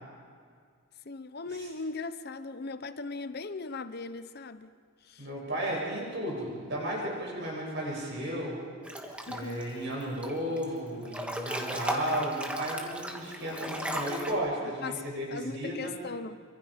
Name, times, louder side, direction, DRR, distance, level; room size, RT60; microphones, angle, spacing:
voice 1, 1.0-4.7 5.0-5.3 9.3-9.6 14.8-15.0 15.3-16.4, left 4 dB, 50° left, 0.7 m, -38 dB
voice 2, 5.2-8.6 9.3-15.9, equal, 55° right, 7.5 m, -34 dB
Breathing / Bathtub (filling or washing) / Splash splatter, 8.8-9.6 10.0-10.6 11.0-14.3, right 1 dB, 5° right, 1.5 m, -36 dB
26.5 x 25.0 x 5.1 m
head